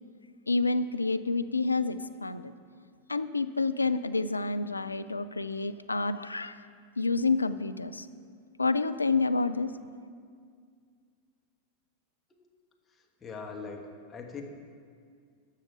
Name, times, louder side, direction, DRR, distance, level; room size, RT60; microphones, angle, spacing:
voice 1, 0.5-2.5 3.1-6.6 7.0-8.1 8.6-9.7, left 3 dB, 80° left, 12 dB, 0.3 m, -28 dB
voice 2, 12.9-14.4, left 4 dB, 20° left, 1 dB, 1.4 m, -42 dB
13.0 x 6.4 x 4.9 m, 2.1 s
figure-of-eight pair, 90°, 0 cm